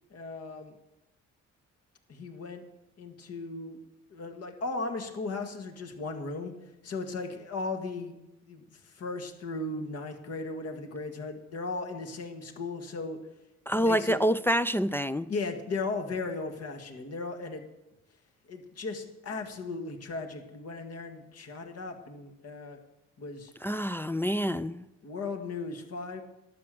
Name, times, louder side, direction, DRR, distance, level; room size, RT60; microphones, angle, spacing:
voice 1, 0.1-0.8 2.1-2.6 3.0-3.8 4.1-6.5 6.8-8.1 8.4-13.2 13.8-14.2 15.3-17.7 18.5-22.8 23.2-23.5 25.0-26.2, left 3 dB, 55° left, 2.0 m, -36 dB
voice 2, 13.7-15.3 23.6-24.8, equal, 10° left, 0.3 m, -27 dB
11.5 x 7.4 x 7.7 m
cardioid pair, 90°, 30 cm